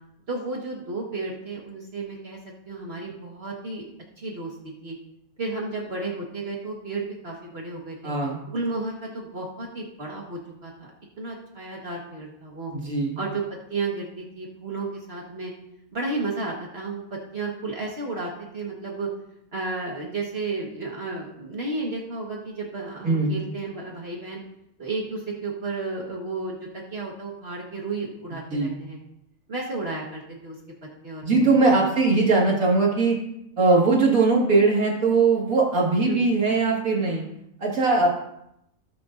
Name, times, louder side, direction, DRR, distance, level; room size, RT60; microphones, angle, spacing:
voice 1, 0.3-2.4 2.7-3.9 4.2-4.5 4.8-4.9 5.4-8.0 8.5-10.9 11.2-12.7 13.2-13.4 13.7-15.5 15.9-19.1 19.5-24.4 24.8-29.0 29.5-30.6 31.0-31.6 36.1-36.2, right 3 dB, 45° right, -2 dB, 1.7 m, -32 dB
voice 2, 8.0-8.4 12.8-13.2 23.0-23.4 28.5-28.8 31.2-33.2 33.6-37.2 37.6-38.1, right 3 dB, 75° right, -3 dB, 2.4 m, -20 dB
20.0 x 6.8 x 2.6 m, 0.80 s
omnidirectional pair, 1.5 m